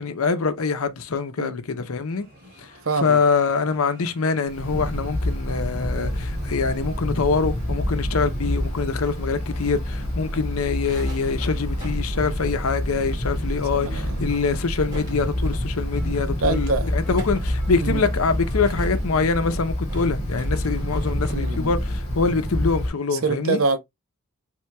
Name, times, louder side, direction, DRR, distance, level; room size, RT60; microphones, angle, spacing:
voice 1, 0.0-2.3 2.6-2.7 3.0-23.6, left 4 dB, 75° left, 0.7 m, -24 dB
sound 1, 2.1-19.5, right 1 dB, 40° right, 2.0 m, -50 dB
voice 2, 2.8-3.2 13.7-14.2 16.4-16.9 17.8-18.0 21.3-21.7 23.1-23.8, right 3 dB, 70° right, 0.7 m, -25 dB
Wind, 4.5-22.9, left 1 dB, 30° left, 2.2 m, -27 dB
sound 2, 10.7-13.3 13.5-13.6 14.0-15.8 16.9-21.7, right 1 dB, 20° right, 2.6 m, -45 dB
4.4 x 3.7 x 2.2 m
head